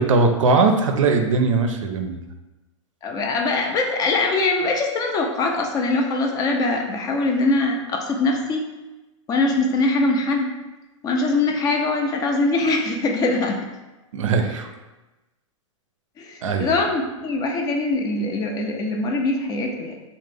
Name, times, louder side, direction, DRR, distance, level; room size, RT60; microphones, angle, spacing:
voice 1, 0.0-2.2 14.1-14.7 16.4-16.7, right 4 dB, 80° right, 5 dB, 0.4 m, -20 dB
voice 2, 3.0-8.7 9.3-10.5 11.0-13.7 16.2-20.0, left 2 dB, 25° left, 2 dB, 0.3 m, -22 dB
2.4 x 2.1 x 3.3 m, 1.1 s
hypercardioid pair, 115°, 16 cm